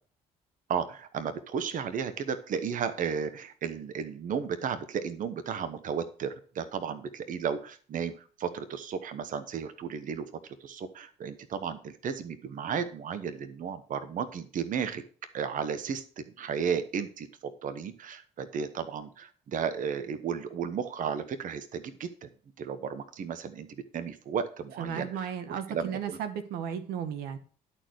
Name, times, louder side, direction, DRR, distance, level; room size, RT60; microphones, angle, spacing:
voice 1, 0.7-10.3 10.6-15.0 15.3-22.3 22.6-26.2, right 7 dB, 55° right, 11 dB, 1.0 m, -34 dB
voice 2, 24.8-27.4, right 8 dB, 80° right, 9 dB, 1.2 m, -35 dB
11.0 x 4.4 x 6.2 m, 0.41 s
supercardioid pair, 75°, 16 cm